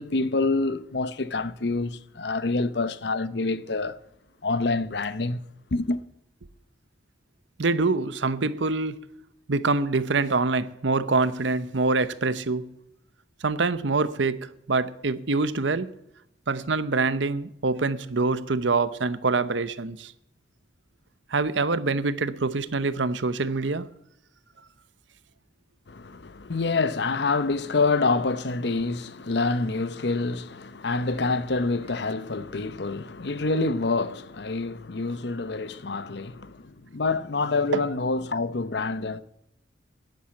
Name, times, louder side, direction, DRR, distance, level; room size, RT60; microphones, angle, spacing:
voice 1, 0.0-4.0 4.4-5.4 5.7-6.0 25.9-39.2, left 3 dB, 65° left, 0.8 m, -27 dB
voice 2, 7.6-9.0 9.5-12.7 13.4-15.9 16.5-20.1 21.3-23.9 37.7-37.8, right 3 dB, 80° right, 0.8 m, -25 dB
10.5 x 10.5 x 8.3 m
head